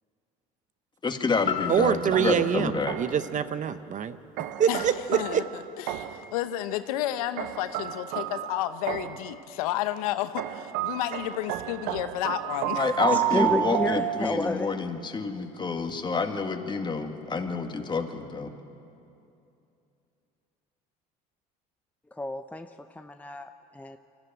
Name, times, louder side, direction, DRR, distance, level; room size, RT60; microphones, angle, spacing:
voice 1, 1.0-3.0 12.8-18.5, left 4 dB, 25° left, 5 dB, 2.0 m, -28 dB
sound 1, 1.4-5.5 6.0-6.1, left 8 dB, 45° left, 1.2 m, -38 dB
voice 2, 1.7-5.4, right 8 dB, 45° right, 13 dB, 0.9 m, -26 dB
sound 2, 2.1-3.3 4.4-6.3 7.4-9.3 10.4-14.7, right 12 dB, 75° right, 0.9 m, -31 dB
voice 3, 5.1-5.4 5.9-12.9 13.1-13.2, left 13 dB, 85° left, 11 dB, 0.9 m, -31 dB
voice 4, 13.1-14.7 22.1-24.0, left 2 dB, 10° left, 7 dB, 0.7 m, -31 dB
24.5 x 15.0 x 9.1 m, 2.7 s
supercardioid pair, 80°, 18 cm